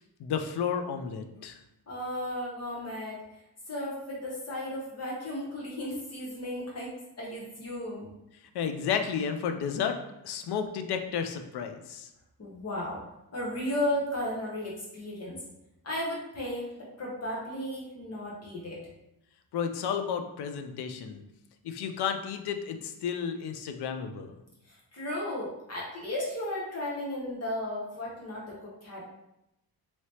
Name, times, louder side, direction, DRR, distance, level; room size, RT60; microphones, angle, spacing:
voice 1, 0.2-1.6 8.5-10.0 10.2-12.1 19.5-21.2 21.6-24.4, left 7 dB, 70° left, 6 dB, 0.5 m, -32 dB
voice 2, 1.9-3.2 3.7-8.1 12.4-13.0 13.3-15.4 15.8-18.8 24.7-29.0, left 1 dB, 35° left, -4 dB, 0.9 m, -35 dB
3.1 x 2.9 x 2.8 m, 0.86 s
wide cardioid pair, 155°, 41 cm